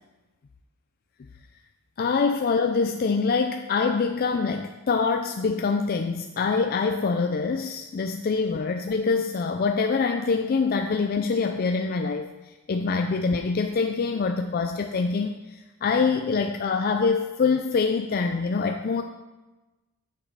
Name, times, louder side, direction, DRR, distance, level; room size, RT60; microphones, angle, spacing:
voice 1, 2.0-19.0, left 4 dB, 40° left, 5 dB, 0.4 m, -25 dB
7.2 x 7.0 x 5.4 m, 1.1 s
head